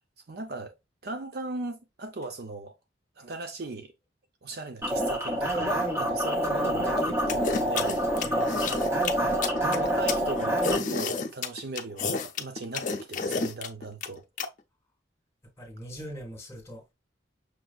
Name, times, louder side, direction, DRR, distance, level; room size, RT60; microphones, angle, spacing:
voice 1, 0.3-0.8 1.0-2.8 3.2-3.9 4.4-8.6 9.0-14.2, right 2 dB, 55° right, 0.6 m, -38 dB
sound 1, 4.8-10.8, equal, 15° right, 0.9 m, -27 dB
sound 2, 7.3-14.5, left 4 dB, 40° left, 0.5 m, -30 dB
voice 2, 8.2-9.0 15.6-16.9, right 1 dB, 15° left, 1.7 m, -42 dB
6.1 x 2.6 x 2.3 m
head